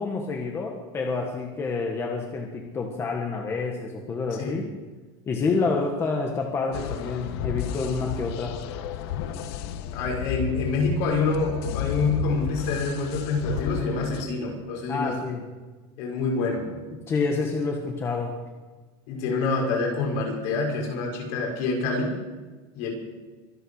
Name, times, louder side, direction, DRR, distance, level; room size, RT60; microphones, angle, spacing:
voice 1, 0.0-4.7 5.3-8.6 14.9-15.4 17.1-18.3, left 4 dB, 20° left, 2 dB, 1.5 m, -28 dB
sound 1, 6.7-14.2, left 8 dB, 75° left, 1.2 m, -32 dB
voice 2, 9.9-15.1 16.0-16.7 19.1-22.1 22.7-22.9, left 3 dB, 60° left, 0 dB, 6.1 m, -26 dB
24.0 x 9.0 x 6.5 m, 1.3 s
cardioid pair, 175°, 13 cm